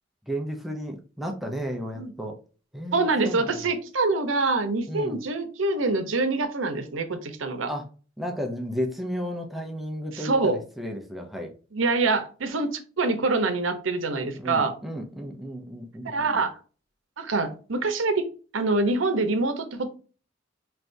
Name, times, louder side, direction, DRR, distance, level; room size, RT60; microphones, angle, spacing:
voice 1, 0.3-2.4 2.7-3.5 4.9-5.2 7.7-7.8 8.2-11.5 14.4-16.4, equal, ahead, 2 dB, 0.6 m, -33 dB
voice 2, 2.9-7.7 10.1-10.6 11.7-12.7 13.0-14.7 16.0-16.6 17.2-18.3 18.5-19.9, right 3 dB, 80° right, 8 dB, 0.8 m, -25 dB
4.6 x 3.3 x 2.6 m, 0.37 s
head